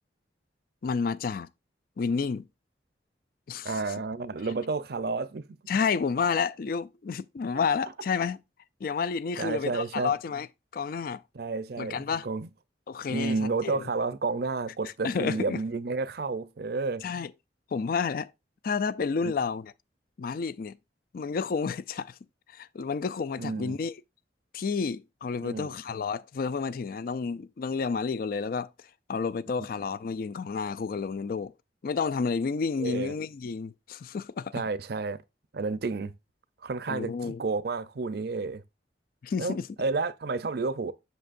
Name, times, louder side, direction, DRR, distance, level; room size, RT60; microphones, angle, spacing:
voice 1, 0.8-1.5 2.0-2.5 3.5-4.0 5.7-8.4 8.8-10.5 10.7-11.2 11.8-12.3 12.9-13.9 15.0-15.6 17.0-17.3 17.7-18.3 18.6-19.7 20.2-20.8 21.1-22.2 22.5-24.0 24.5-28.7 29.1-31.5 31.8-34.5 36.9-37.4 39.2-39.7, left 5 dB, 55° left, 0.4 m, -30 dB
voice 2, 3.6-5.4 9.4-10.1 11.3-12.5 13.1-17.0 23.4-23.8 25.4-25.7 32.8-33.1 34.5-35.2 35.5-36.1 36.6-38.6 39.4-40.9, right 3 dB, 60° right, 0.5 m, -31 dB
7.8 x 6.6 x 2.5 m
head